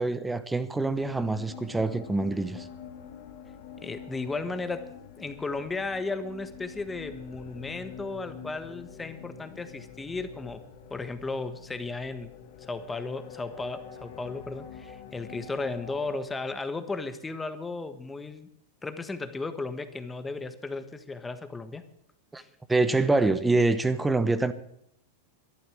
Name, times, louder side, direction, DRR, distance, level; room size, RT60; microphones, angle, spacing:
voice 1, 0.0-2.7 22.3-22.4 22.7-24.5, right 3 dB, 10° right, 1.0 m, -25 dB
sound 1, 0.8-16.2, left 7 dB, 60° left, 2.1 m, -46 dB
voice 2, 3.8-4.9 5.2-10.6 10.9-12.3 12.6-18.5 18.8-21.8 22.4-22.5, left 3 dB, 10° left, 1.4 m, -35 dB
13.0 x 11.0 x 7.8 m
hypercardioid pair, 115°, 0 cm